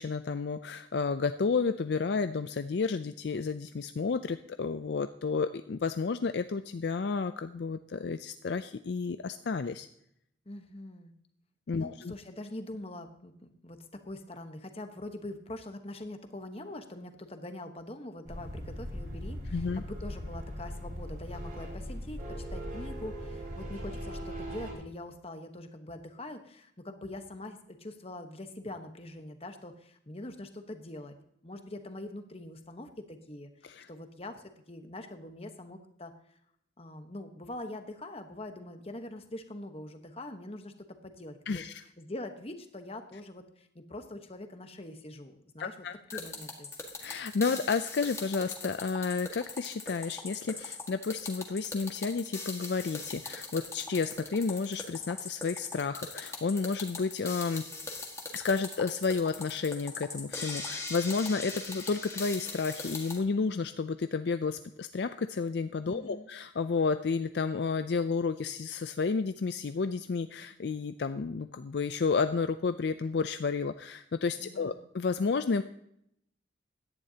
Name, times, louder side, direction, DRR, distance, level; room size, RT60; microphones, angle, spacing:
voice 1, 0.0-9.9 11.7-12.1 19.5-19.8 33.6-33.9 41.5-41.7 45.6-46.2 47.0-57.6 58.3-75.6, left 4 dB, 60° left, 10 dB, 0.4 m, -31 dB
voice 2, 10.4-11.1 11.7-22.2 22.5-31.1 31.4-36.4 36.8-41.6 42.0-45.7 46.1-46.7 65.9-66.3 74.4-74.8, left 1 dB, 30° left, 7 dB, 1.1 m, -43 dB
sound 1, 18.3-24.7, equal, 45° right, 3.5 m, -39 dB
sound 2, 46.1-63.2, left 3 dB, 15° left, 1.6 m, -40 dB
17.0 x 11.0 x 2.8 m, 0.74 s
head